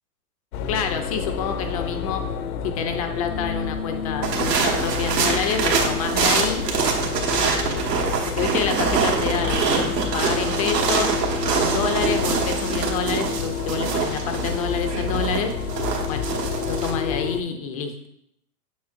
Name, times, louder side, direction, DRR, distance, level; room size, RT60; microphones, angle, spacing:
sound 1, 0.5-17.4, left 6 dB, 65° left, 0.6 m, -29 dB
voice 1, 0.7-2.2 2.6-6.7 7.3-7.9 8.4-11.1 11.5-15.5 16.1-16.2 16.7-18.1, left 6 dB, 25° left, 6 dB, 0.3 m, -28 dB
sound 2, 4.2-16.9, right 5 dB, 85° right, 1.4 m, -25 dB
7.3 x 6.9 x 2.5 m, 0.75 s
hypercardioid pair, 125°, 47 cm